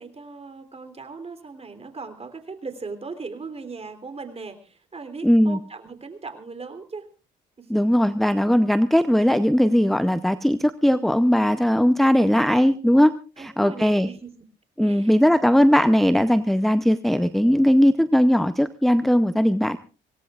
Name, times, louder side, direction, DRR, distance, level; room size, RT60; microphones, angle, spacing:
voice 1, 0.0-7.1 7.6-7.9 12.0-12.7 13.4-14.4 14.8-15.1 19.3-19.5, right 4 dB, 30° right, 8 dB, 3.3 m, -39 dB
voice 2, 5.2-5.6 7.7-14.1 14.8-19.8, equal, ahead, 12 dB, 0.7 m, -19 dB
25.5 x 18.0 x 2.4 m, 0.33 s
cardioid pair, 90°, 20 cm